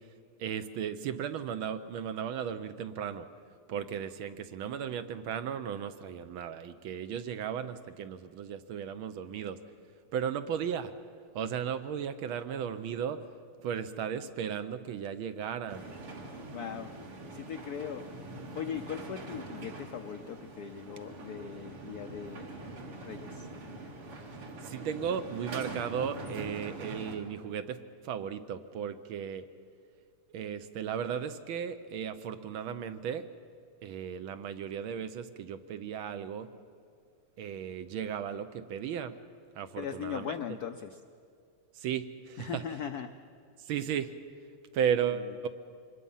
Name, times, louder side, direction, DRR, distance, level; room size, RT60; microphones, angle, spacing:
voice 1, 0.4-3.3 3.7-9.6 10.1-10.9 11.3-13.2 13.6-15.9 24.6-27.8 28.0-29.5 30.3-33.3 33.8-36.5 37.4-39.1 39.5-40.6 41.7-42.6 43.7-44.1 44.7-45.5, right 8 dB, 75° right, 10 dB, 1.5 m, -35 dB
sound 1, 15.7-27.2, right 2 dB, 90° right, 3.0 m, -43 dB
voice 2, 16.5-16.9 17.3-18.3 18.5-22.5 23.0-23.5 39.8-41.0 42.4-43.1 45.1-45.2, left 8 dB, 75° left, 8 dB, 0.8 m, -39 dB
25.0 x 21.0 x 5.6 m, 2.2 s
omnidirectional pair, 2.4 m